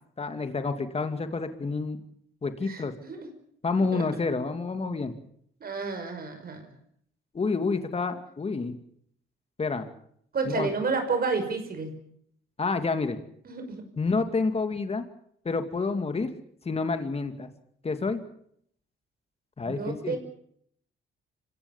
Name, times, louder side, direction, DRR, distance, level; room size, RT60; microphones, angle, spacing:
voice 1, 0.2-2.0 2.4-3.0 3.6-5.1 7.3-8.8 9.6-9.9 10.5-10.7 12.6-13.2 14.0-15.0 15.4-16.3 16.6-17.5 17.8-18.2 19.6-20.2, left 4 dB, 30° left, 8 dB, 2.4 m, -28 dB
voice 2, 2.7-3.3 3.9-4.0 5.6-6.6 10.3-11.9 13.4-13.8 19.7-20.2, right 4 dB, 50° right, 6 dB, 5.6 m, -30 dB
26.0 x 16.5 x 7.3 m, 0.67 s
cardioid pair, 90°, 20 cm